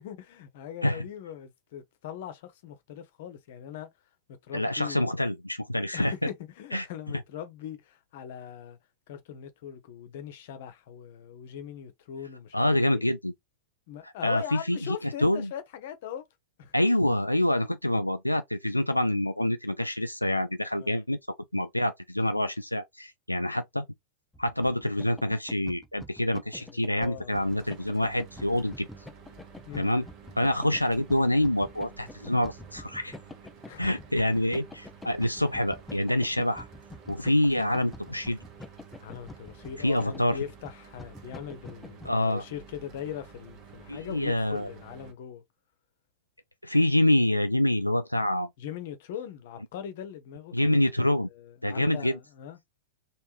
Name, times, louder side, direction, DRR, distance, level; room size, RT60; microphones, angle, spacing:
voice 1, 0.0-3.9 4.3-5.1 5.9-8.8 9.1-13.1 13.9-16.2 16.6-16.7 20.8-21.0 26.6-27.7 29.7-29.9 33.6-33.8 39.0-45.4 48.6-50.8 51.3-52.6, left 9 dB, 55° left, 0.8 m, -41 dB
voice 2, 4.5-6.3 6.7-6.9 12.5-13.3 14.0-15.5 16.7-21.2 21.5-23.9 24.4-28.9 29.7-30.0 30.4-33.2 33.8-36.7 37.1-38.4 39.8-40.4 42.1-42.4 43.9-44.7 46.6-48.5 50.5-51.3 51.6-52.2, left 1 dB, 85° left, 0.3 m, -26 dB
sound 1, 24.3-42.1, left 1 dB, 10° left, 0.6 m, -45 dB
Mechanical fan, 27.3-45.1, right 6 dB, 40° right, 1.1 m, -51 dB
3.3 x 2.6 x 2.9 m
figure-of-eight pair, 90°, 0 cm